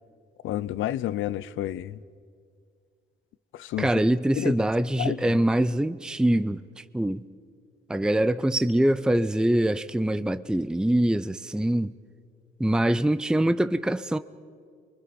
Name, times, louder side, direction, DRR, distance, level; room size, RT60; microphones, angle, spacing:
voice 1, 0.4-2.0 3.5-3.9 4.3-4.6 5.0-5.2, left 13 dB, 80° left, 0.7 m, -30 dB
voice 2, 3.8-7.2 7.9-11.9 12.6-14.2, right 1 dB, 5° right, 0.5 m, -24 dB
29.0 x 23.5 x 5.3 m
cardioid pair, 90°, 20 cm